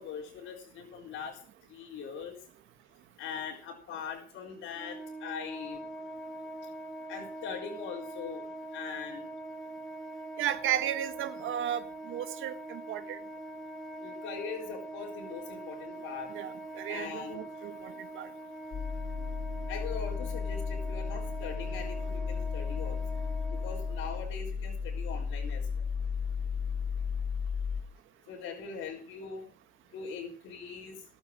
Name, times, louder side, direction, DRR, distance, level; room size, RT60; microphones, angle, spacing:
voice 1, 0.0-1.4 1.7-2.4 3.2-5.8 7.1-9.3 14.0-16.3 16.8-17.5 19.7-23.0 23.5-25.8 28.3-29.5 29.9-31.0, left 6 dB, 85° left, 4.2 m, -41 dB
Wind instrument woodwind instrument, 4.7-24.2, right 2 dB, ahead, 3.3 m, -43 dB
voice 2, 10.4-13.2 16.3-18.3, right 11 dB, 90° right, 1.7 m, -34 dB
sound 1, 18.7-27.8, left 6 dB, 65° left, 4.2 m, -34 dB
19.5 x 8.9 x 6.4 m
cardioid pair, 90°, 20 cm